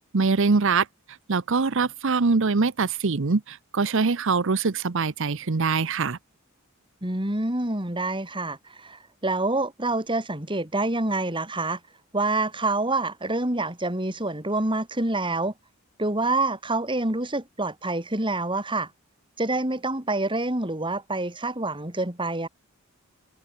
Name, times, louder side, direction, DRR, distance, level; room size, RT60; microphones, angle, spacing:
voice 1, 0.1-0.9 1.3-6.2, right 4 dB, 60° right, 0.8 m, -23 dB
voice 2, 7.0-8.6 8.8-9.0 9.2-11.8 12.1-15.5 16.0-18.9 19.4-22.5, right 2 dB, 25° right, 3.7 m, -27 dB
head